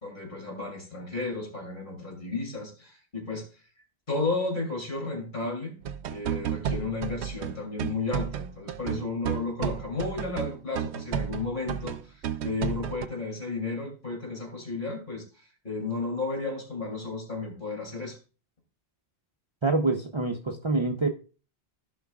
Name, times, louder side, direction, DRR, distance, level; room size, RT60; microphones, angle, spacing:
voice 1, 0.0-3.4 4.1-5.8 6.1-12.1 12.4-15.2 15.6-18.2, left 3 dB, 45° left, 1 dB, 2.6 m, -33 dB
sound 1, 5.8-13.1, right 9 dB, 80° right, 0.9 m, -32 dB
voice 2, 19.6-21.1, right 3 dB, 30° right, 4 dB, 0.7 m, -26 dB
15.0 x 5.5 x 2.3 m, 0.35 s
omnidirectional pair, 1.1 m